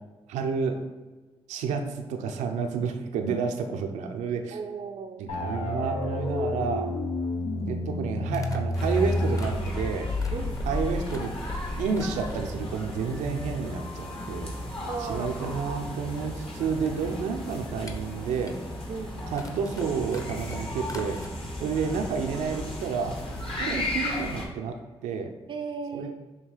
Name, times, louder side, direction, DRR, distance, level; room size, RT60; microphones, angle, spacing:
voice 1, 0.3-0.8 1.5-4.6 5.2-6.9 7.7-10.1 10.7-11.3 11.8-14.5 15.1-18.6 19.3-21.2 21.6-23.2 23.6-24.7 25.0-25.3 25.9-26.1, right 5 dB, 90° right, 5 dB, 0.6 m, -30 dB
voice 2, 4.5-5.2 10.3-10.6 14.9-15.4 18.9-19.2 21.6-21.7 23.6-23.9 25.5-26.1, right 5 dB, 45° right, 5 dB, 0.5 m, -36 dB
sound 1, 5.3-11.9, left 2 dB, 70° left, 0.8 m, -30 dB
sound 2, 5.5-5.6 7.3-7.4 8.3-11.6 11.9-12.6 13.1-13.7 14.0-14.1 14.3-21.3, left 1 dB, 30° left, 1.1 m, -47 dB
sound 3, 8.7-24.4, left 1 dB, 50° left, 1.8 m, -35 dB
6.4 x 2.8 x 5.5 m, 1.2 s
supercardioid pair, 50°, 12 cm